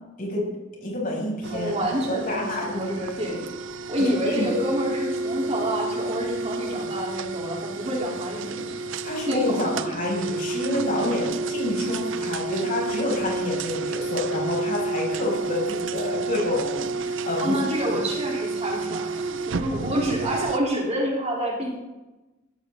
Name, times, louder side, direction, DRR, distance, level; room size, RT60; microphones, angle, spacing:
voice 1, 0.2-1.7 2.1-2.9 4.0-4.5 9.0-17.6 17.9-18.0 18.9-19.0, left 1 dB, 45° left, -3 dB, 7.1 m, -28 dB
sound 1, 1.4-20.6, right 3 dB, 70° right, 0.6 m, -30 dB
voice 2, 1.5-3.4 3.9-8.8 9.3-10.0 17.4-21.8, equal, 35° right, -2 dB, 3.9 m, -28 dB
19.5 x 14.5 x 4.0 m, 1.1 s
head